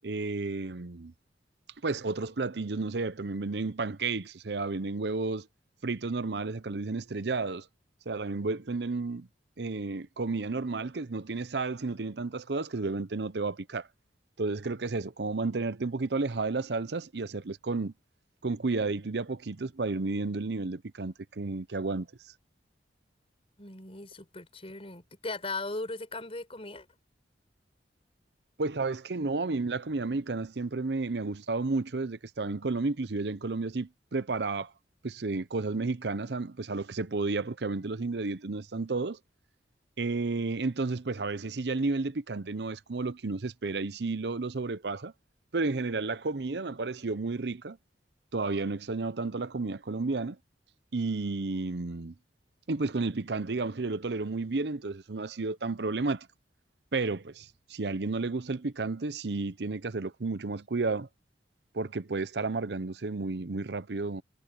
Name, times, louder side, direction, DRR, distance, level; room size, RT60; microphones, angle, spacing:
voice 1, 0.0-1.1 1.8-5.5 5.8-7.7 8.1-9.3 9.6-13.9 14.4-17.9 18.4-22.1 28.6-34.7 35.0-39.2 40.0-45.1 45.5-47.8 48.3-50.4 50.9-52.1 52.7-56.3 56.9-61.1 61.7-64.2, right 3 dB, 65° right, 0.8 m, -32 dB
voice 2, 23.6-26.9, left 2 dB, 35° left, 5.6 m, -38 dB
head